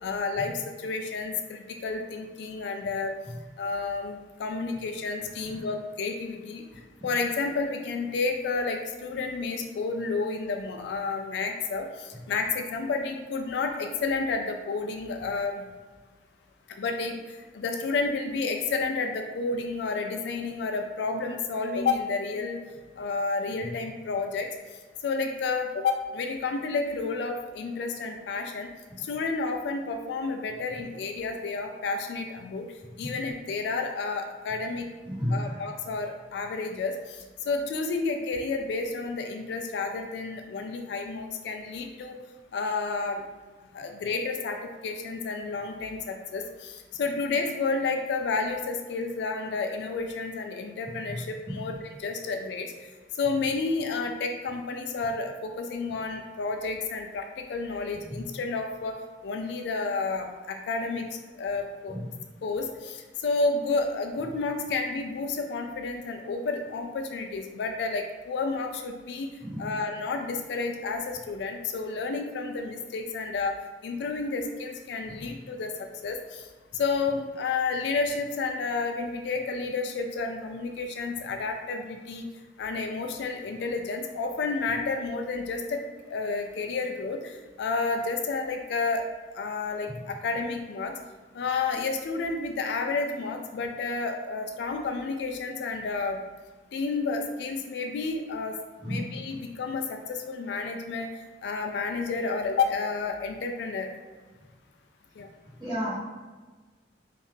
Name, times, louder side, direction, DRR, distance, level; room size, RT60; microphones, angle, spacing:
voice 1, 0.0-0.5 0.8-3.1 3.6-6.6 7.0-15.6 16.8-17.2 17.5-22.6 23.0-24.5 25.0-28.7 29.0-32.6 33.0-34.9 35.3-36.9 37.5-42.2 42.5-43.2 43.7-44.6 44.8-52.7 53.2-58.9 59.2-61.0 61.4-61.9 62.4-63.0 63.2-69.3 69.6-73.6 73.8-75.7 76.0-76.4 76.7-82.3 82.6-85.8 86.1-87.3 87.6-89.0 89.4-90.9 91.3-96.2 96.7-98.5 98.8-101.1 101.4-103.9 105.2-105.3, left 4 dB, 65° left, 4 dB, 0.3 m, -30 dB
voice 2, 105.6-106.0, equal, 25° right, -9 dB, 1.2 m, -31 dB
2.6 x 2.4 x 3.5 m, 1.3 s
head